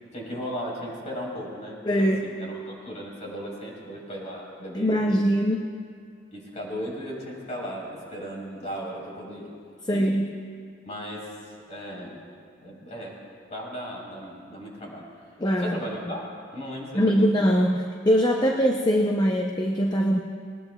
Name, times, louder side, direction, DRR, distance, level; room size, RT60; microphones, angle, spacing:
voice 1, 0.1-5.3 6.3-9.5 9.9-10.3 10.9-11.3 11.7-12.2 12.6-13.2 13.5-15.1 15.6-16.3 16.5-17.3, equal, 40° left, -3 dB, 3.7 m, -36 dB
voice 2, 1.8-2.3 4.7-5.7 9.9-10.3 15.4-15.8 16.9-20.2, equal, 20° left, 2 dB, 0.6 m, -22 dB
19.5 x 19.0 x 2.3 m, 2.2 s
head